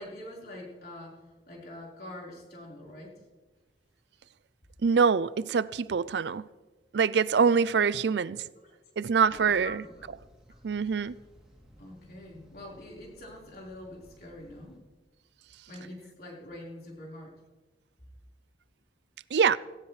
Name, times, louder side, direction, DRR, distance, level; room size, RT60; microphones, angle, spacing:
voice 1, 0.0-3.2 8.6-8.7 9.3-10.1 11.8-14.8 15.7-17.3, left 1 dB, 60° left, 4.4 m, -45 dB
voice 2, 4.8-6.5 6.9-8.4 9.0-9.8 10.6-11.2 19.3-19.6, right 6 dB, 75° right, 0.4 m, -24 dB
sound 1, 9.1-14.8, equal, 5° right, 2.9 m, -57 dB
17.0 x 16.5 x 3.3 m
head